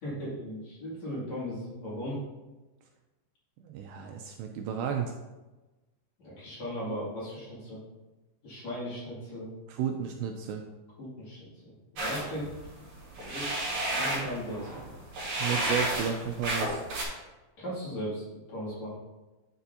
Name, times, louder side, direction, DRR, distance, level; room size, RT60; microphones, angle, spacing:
voice 1, 0.0-2.2 6.2-7.8 8.4-9.5 11.0-12.5 13.2-14.7 17.6-19.0, equal, 45° left, -8 dB, 3.0 m, -37 dB
voice 2, 3.6-5.1 9.7-10.6 15.4-16.8, right 7 dB, 85° right, 3 dB, 2.6 m, -33 dB
sound 1, 12.0-17.0, right 1 dB, 40° right, 3.9 m, -32 dB
9.8 x 6.9 x 2.7 m, 1.1 s
omnidirectional pair, 5.3 m